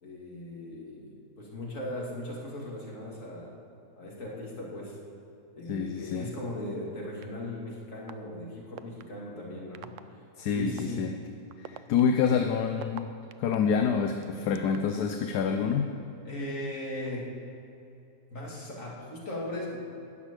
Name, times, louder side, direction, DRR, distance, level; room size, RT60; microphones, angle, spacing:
voice 1, 0.0-3.5 4.0-5.0 5.6-9.9 10.5-11.0 16.2-17.2 18.3-19.8, left 1 dB, 50° left, -4 dB, 3.0 m, -38 dB
voice 2, 5.7-6.3 10.4-11.1 11.6-13.1 13.4-15.9, left 6 dB, 75° left, 5 dB, 1.3 m, -27 dB
sound 1, 7.2-7.3 8.1-8.2 8.8-9.0 9.7-10.0 10.8-10.9 11.5-13.6 14.2-15.0, right 11 dB, 65° right, 0.8 m, -43 dB
13.0 x 6.4 x 9.8 m, 2.8 s
omnidirectional pair, 1.7 m